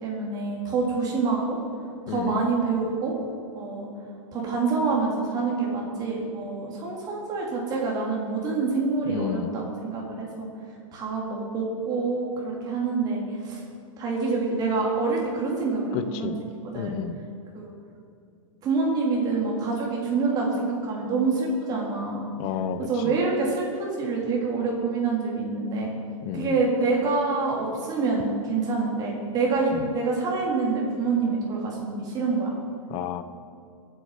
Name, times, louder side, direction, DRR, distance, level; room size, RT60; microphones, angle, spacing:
voice 1, 0.0-1.6 2.1-3.1 3.5-3.9 4.3-10.5 10.9-13.6 14.0-16.3 16.6-17.0 17.5-17.7 18.6-22.3 22.8-23.7 24.0-25.9 26.3-32.5, right 4 dB, 25° right, -3 dB, 3.5 m, -26 dB
voice 2, 2.1-2.4 9.1-9.6 15.9-16.4 16.7-17.2 22.4-23.2 26.2-26.6 29.7-29.8 32.9-33.2, left 8 dB, 30° left, 11 dB, 0.8 m, -31 dB
23.5 x 8.8 x 5.0 m, 2.6 s
supercardioid pair, 160°, 17 cm